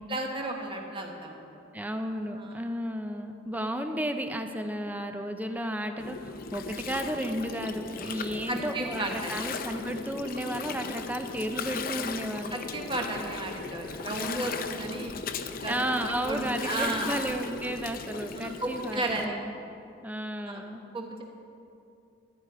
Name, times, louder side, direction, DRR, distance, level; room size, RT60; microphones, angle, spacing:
voice 1, 0.1-1.4 2.4-2.5 8.5-9.5 12.5-15.1 15.5-15.7 16.3-17.2 18.4-19.4 20.5-20.6 20.9-21.2, right 2 dB, 25° right, 1 dB, 1.3 m, -33 dB
voice 2, 1.7-12.6 15.7-19.5 20.0-20.8, equal, 10° right, 6 dB, 0.7 m, -33 dB
Gurgling, 6.0-19.3, left 5 dB, 50° left, 0.6 m, -38 dB
14.0 x 11.0 x 4.9 m, 2.7 s
head